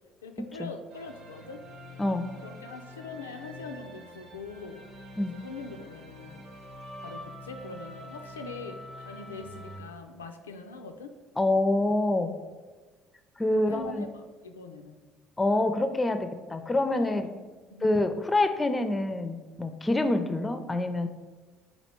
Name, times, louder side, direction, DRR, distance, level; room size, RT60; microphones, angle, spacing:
voice 1, 0.2-1.6 2.4-4.8 5.2-6.4 7.0-11.1 13.5-15.0 16.9-17.4 17.7-18.1, left 3 dB, 90° left, 6 dB, 0.3 m, -43 dB
sound 1, 0.9-9.8, left 1 dB, 60° right, 0.7 m, -46 dB
voice 2, 11.4-12.3 13.4-14.1 15.4-17.3 17.8-21.1, left 2 dB, 20° left, 9 dB, 0.4 m, -26 dB
4.2 x 2.7 x 4.4 m, 1.3 s
hypercardioid pair, 60°, 0 cm